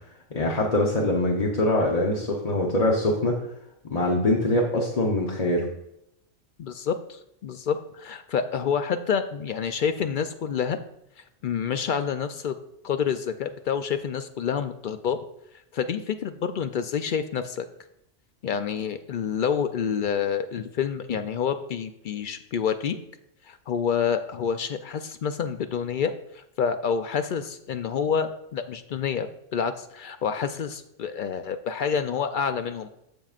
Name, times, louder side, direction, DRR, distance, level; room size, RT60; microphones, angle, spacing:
voice 1, 0.3-3.4 3.9-5.7, left 1 dB, 35° left, -2 dB, 0.8 m, -23 dB
voice 2, 6.6-10.8 11.4-12.6 12.8-15.2 15.7-17.7 18.4-23.0 23.5-29.3 29.5-32.9, left 7 dB, 65° left, 9 dB, 0.5 m, -28 dB
15.0 x 5.4 x 2.4 m, 0.80 s
omnidirectional pair, 1.3 m